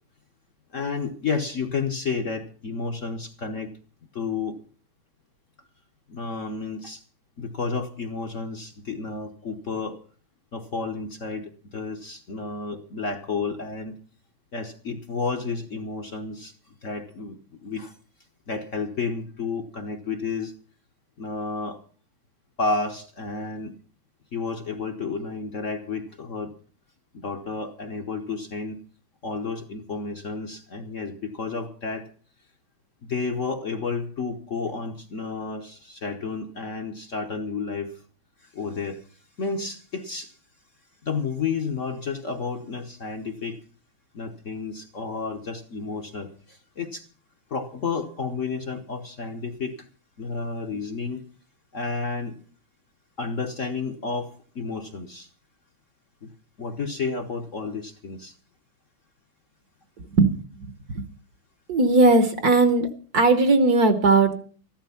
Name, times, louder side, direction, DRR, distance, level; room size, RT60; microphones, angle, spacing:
voice 1, 0.7-3.7 4.1-4.5 6.1-7.0 7.4-10.0 10.5-13.9 14.5-17.9 18.5-20.5 21.2-21.8 22.6-23.8 24.3-26.5 27.1-28.8 29.2-32.1 33.0-38.0 38.4-40.3 41.0-43.6 44.1-47.0 47.5-49.9 50.2-51.2 51.7-52.4 53.2-55.3 56.2-56.3 56.6-58.3, left 4 dB, 45° left, 4 dB, 1.1 m, -31 dB
voice 2, 60.6-61.1 61.7-62.9 63.1-64.4, right 3 dB, 55° right, 10 dB, 1.4 m, -18 dB
14.0 x 12.0 x 5.7 m, 0.42 s
omnidirectional pair, 2.2 m